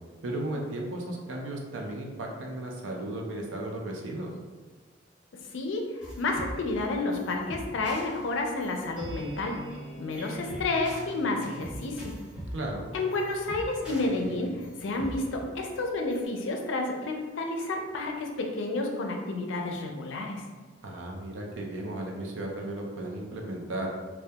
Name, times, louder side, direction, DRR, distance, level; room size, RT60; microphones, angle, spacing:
voice 1, 0.2-4.3 12.5-12.9 20.8-23.9, right 1 dB, 90° right, 0 dB, 0.5 m, -35 dB
voice 2, 5.5-9.6 10.0-12.1 12.9-20.4, left 2 dB, 80° left, 2 dB, 0.4 m, -30 dB
sound 1, 6.0-16.2, equal, 5° right, 0.9 m, -43 dB
2.2 x 2.1 x 2.7 m, 1.4 s
head